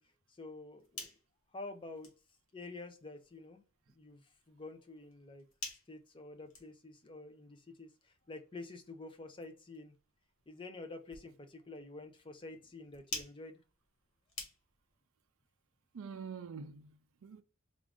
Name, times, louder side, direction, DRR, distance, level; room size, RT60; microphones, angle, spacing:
voice 1, 0.3-1.1 1.5-2.1 2.5-3.6 3.9-5.4 5.9-9.9 10.5-13.6, left 2 dB, 25° left, 0.6 m, -49 dB
sound 1, 0.6-15.0, left 3 dB, 65° left, 1.4 m, -52 dB
voice 2, 15.9-17.4, right 5 dB, 65° right, 0.4 m, -46 dB
3.6 x 2.5 x 3.5 m
head